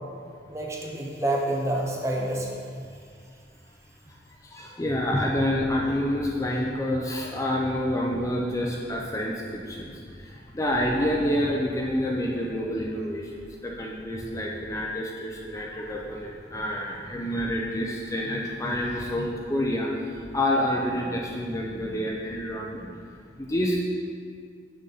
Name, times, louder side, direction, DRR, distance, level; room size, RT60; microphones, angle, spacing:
voice 1, 0.5-2.5, right 1 dB, 15° right, -1 dB, 0.8 m, -28 dB
voice 2, 4.4-13.3 13.6-22.9 23.4-23.8, left 1 dB, 15° left, -2 dB, 0.5 m, -28 dB
7.0 x 6.4 x 4.0 m, 2.2 s
head